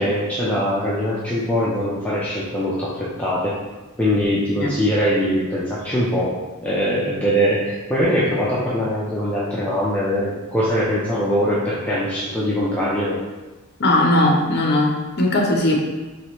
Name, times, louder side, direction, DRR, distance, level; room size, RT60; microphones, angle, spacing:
voice 1, 0.0-3.5 4.0-13.2, equal, 5° left, -8 dB, 0.5 m, -22 dB
voice 2, 13.8-15.8, left 1 dB, 50° left, 0 dB, 0.7 m, -18 dB
4.6 x 3.2 x 2.9 m, 1.2 s
head